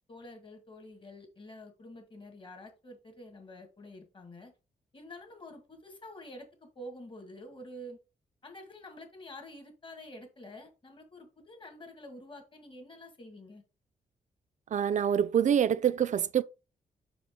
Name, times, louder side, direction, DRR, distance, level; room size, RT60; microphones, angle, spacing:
voice 1, 0.1-4.5 4.9-8.0 8.4-13.6, left 1 dB, 35° left, 1.8 m, -48 dB
voice 2, 14.7-16.4, right 9 dB, 55° right, 0.5 m, -26 dB
5.6 x 5.1 x 3.6 m
wide cardioid pair, 120°, 15 cm